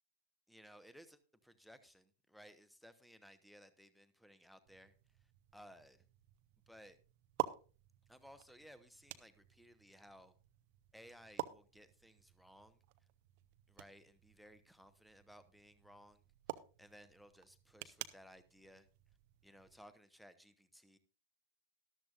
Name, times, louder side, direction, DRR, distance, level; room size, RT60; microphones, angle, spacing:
voice 1, 0.5-4.9 5.5-6.1 6.7-7.0 8.1-10.3 10.9-12.8 13.7-16.2 16.8-18.9 19.4-21.0, equal, ahead, 13 dB, 1.1 m, -60 dB
sound 1, 4.7-19.9, right 16 dB, 45° right, 0.6 m, -50 dB
13.5 x 12.0 x 2.5 m, 0.34 s
figure-of-eight pair, 90°, 0 cm